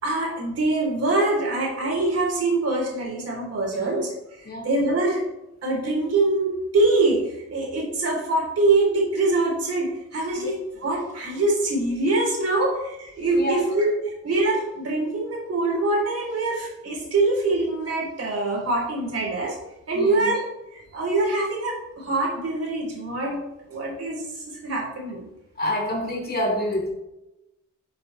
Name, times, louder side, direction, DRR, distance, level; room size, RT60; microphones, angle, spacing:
voice 1, 0.0-4.1 4.6-5.2 5.6-19.6 19.9-20.4 20.7-23.4 23.7-25.3, right 2 dB, 55° right, -1 dB, 4.0 m, -24 dB
voice 2, 3.7-4.0 4.4-4.7 10.3-10.5 13.2-13.6 19.9-20.3 25.6-26.9, left 1 dB, 35° left, -2 dB, 2.8 m, -27 dB
11.0 x 8.5 x 3.4 m, 0.90 s
wide cardioid pair, 150°, 29 cm